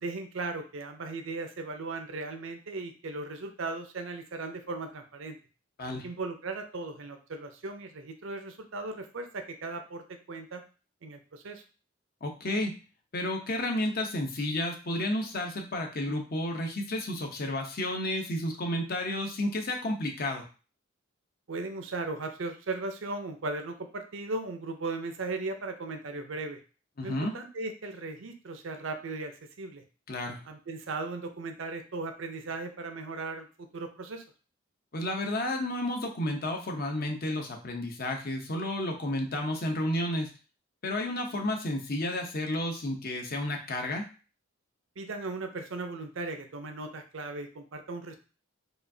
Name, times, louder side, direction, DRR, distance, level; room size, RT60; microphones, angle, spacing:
voice 1, 0.0-5.3 6.0-10.6 11.0-11.6 21.5-26.6 27.0-29.8 30.5-34.2 45.0-48.1, right 3 dB, 65° right, 6 dB, 0.6 m, -37 dB
voice 2, 12.2-12.7 13.1-20.5 27.0-27.3 30.1-30.4 34.9-40.3 40.8-44.1, left 1 dB, 45° left, 2 dB, 0.8 m, -31 dB
4.8 x 2.4 x 2.7 m, 0.35 s
head